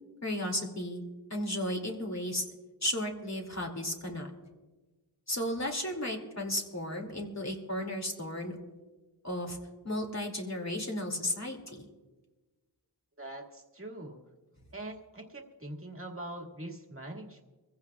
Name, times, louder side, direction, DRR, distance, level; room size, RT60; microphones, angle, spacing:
voice 1, 0.2-1.0 1.3-2.5 2.8-4.3 5.3-8.5 9.2-9.6 9.8-11.8, left 1 dB, 40° left, 1 dB, 2.5 m, -34 dB
voice 2, 13.2-14.2 14.7-17.4, right 1 dB, 30° right, 1 dB, 2.0 m, -43 dB
25.5 x 15.5 x 2.4 m, 1.2 s
wide cardioid pair, 70°, 44 cm